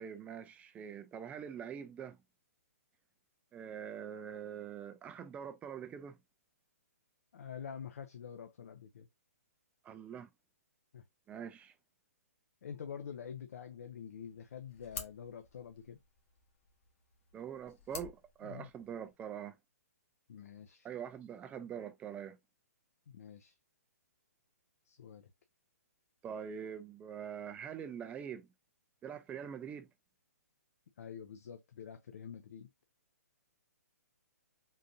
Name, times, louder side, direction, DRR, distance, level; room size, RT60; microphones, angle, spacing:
voice 1, 0.0-2.2 3.5-6.2 9.8-10.3 11.3-11.7 17.3-19.6 20.8-22.4 26.2-28.5 29.0-29.9, right 8 dB, 15° right, 0.4 m, -44 dB
voice 2, 7.3-9.1 10.9-11.0 12.6-16.0 18.4-18.7 20.3-20.9 23.1-23.5 24.9-25.3 31.0-32.7, left 7 dB, 65° left, 0.6 m, -47 dB
sound 1, 14.2-19.2, left 5 dB, 50° left, 1.1 m, -51 dB
3.8 x 2.6 x 2.6 m
hypercardioid pair, 130°, 9 cm